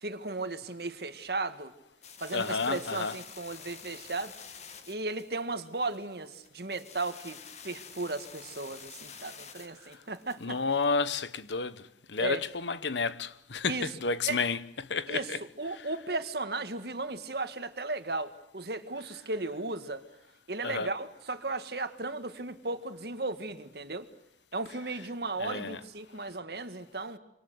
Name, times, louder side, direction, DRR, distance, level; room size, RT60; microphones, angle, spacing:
voice 1, 0.0-1.7 2.2-4.4 4.9-10.6 12.2-12.4 13.7-13.9 14.2-14.4 15.1-15.3 15.6-20.0 20.5-24.1 24.5-27.2, right 3 dB, 60° right, 1.9 m, -35 dB
sound 1, 2.0-11.4, left 6 dB, 40° left, 1.9 m, -49 dB
voice 2, 2.3-3.2 10.4-11.8 12.1-15.4 15.7-15.8 20.6-20.9 25.4-25.8, left 4 dB, 85° left, 1.1 m, -31 dB
26.5 x 26.0 x 7.9 m
head